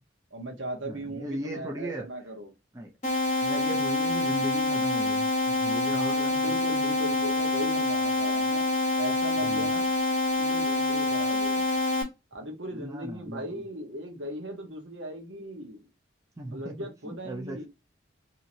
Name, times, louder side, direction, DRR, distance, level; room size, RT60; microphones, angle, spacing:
voice 1, 0.3-2.5 5.8-9.9 10.4-11.7 12.3-15.8 16.5-17.7, right 1 dB, 70° right, 0.9 m, -38 dB
voice 2, 0.8-2.1 2.7-2.9 3.4-6.7 9.4-9.7 12.7-13.6 16.4-17.7, right 1 dB, 15° right, 0.5 m, -37 dB
sound 1, 3.0-12.0, left 2 dB, 35° left, 0.9 m, -26 dB
2.8 x 2.8 x 2.6 m
head